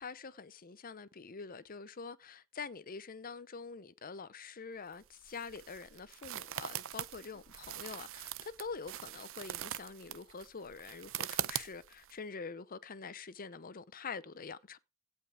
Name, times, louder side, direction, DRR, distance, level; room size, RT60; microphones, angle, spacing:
voice 1, 0.0-14.8, left 5 dB, 40° left, 0.7 m, -45 dB
sound 1, 4.9-12.1, right 11 dB, 65° right, 0.7 m, -42 dB
16.5 x 5.6 x 4.8 m
head